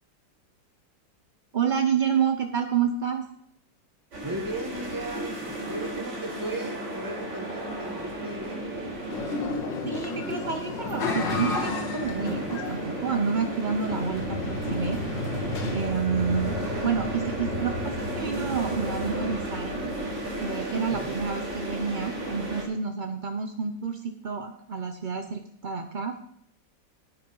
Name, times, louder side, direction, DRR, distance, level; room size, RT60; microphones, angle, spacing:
voice 1, 1.5-3.2 9.8-15.0 15.7-16.6 16.8-19.8 20.4-26.2, right 6 dB, 60° right, 6 dB, 0.5 m, -29 dB
sound 1, 4.1-22.6, right 1 dB, 85° right, 4.4 m, -34 dB
voice 2, 4.2-8.9 20.8-21.1, right 1 dB, 10° right, 5 dB, 1.2 m, -36 dB
sound 2, 9.1-15.8, left 4 dB, 75° left, 2.2 m, -33 dB
sound 3, 13.8-20.3, left 1 dB, 35° right, 2.7 m, -36 dB
9.8 x 9.8 x 5.5 m, 0.67 s
omnidirectional pair, 2.0 m